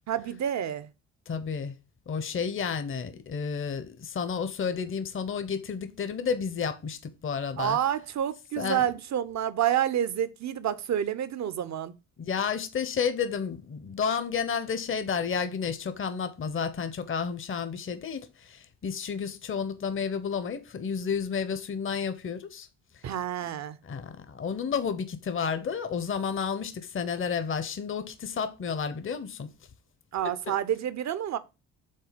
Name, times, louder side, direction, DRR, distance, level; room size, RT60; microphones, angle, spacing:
voice 1, 0.1-0.9 7.6-11.9 23.0-23.8 30.1-31.4, right 10 dB, 50° right, 0.7 m, -29 dB
voice 2, 1.3-1.7 2.1-7.8 8.6-8.9 12.2-22.7 23.8-29.5 30.5-30.6, left 6 dB, 35° left, 0.8 m, -31 dB
5.6 x 3.6 x 5.0 m
supercardioid pair, 60°, 35 cm